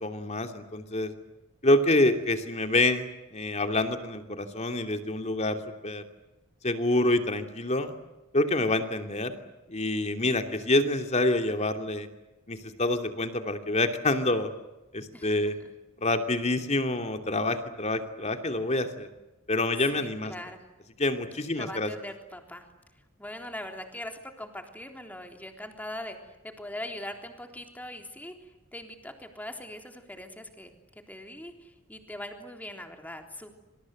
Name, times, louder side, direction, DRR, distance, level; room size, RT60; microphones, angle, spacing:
voice 1, 0.0-1.1 1.6-3.1 3.3-5.6 5.8-6.0 6.6-7.9 8.3-9.4 9.7-12.1 12.5-14.5 14.9-15.6 16.0-19.1 19.5-20.3 21.0-21.9, left 2 dB, 30° left, 6 dB, 2.8 m, -27 dB
voice 2, 19.9-20.6 21.5-22.7 23.2-26.2 26.4-28.3 28.7-30.7 31.1-33.5, left 1 dB, 5° left, 4 dB, 3.6 m, -41 dB
27.0 x 27.0 x 7.9 m, 1.0 s
head